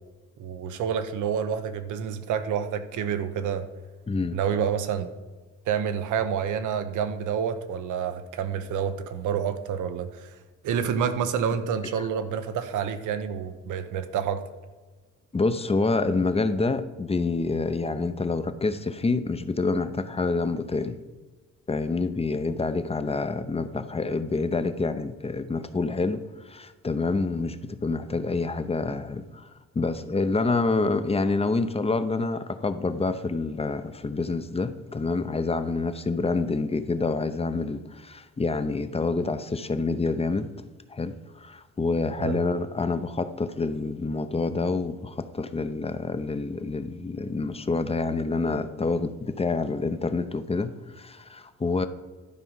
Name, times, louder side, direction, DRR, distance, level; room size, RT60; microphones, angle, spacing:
voice 1, 0.4-3.7 4.3-5.1 5.7-10.3 10.6-14.4 42.2-42.4, right 7 dB, 85° right, 0.9 m, -28 dB
voice 2, 4.1-4.4 15.3-21.0 21.7-29.5 29.8-40.5 40.9-51.9, left 3 dB, 20° left, 0.7 m, -27 dB
12.0 x 4.9 x 5.5 m
cardioid pair, 90°, 30 cm